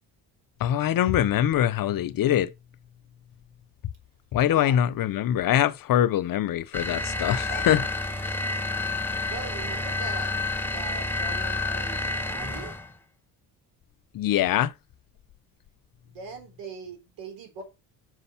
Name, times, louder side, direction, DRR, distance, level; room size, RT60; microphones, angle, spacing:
voice 1, 0.6-2.5 4.3-7.8 14.1-14.7, left 11 dB, 55° left, 0.7 m, -23 dB
voice 2, 4.5-4.8 7.3-7.9 9.3-12.7 16.0-17.6, right 4 dB, 85° right, 3.8 m, -41 dB
sound 1, 6.7-12.9, left 3 dB, 5° left, 1.2 m, -29 dB
6.3 x 5.4 x 5.7 m
supercardioid pair, 80°, 42 cm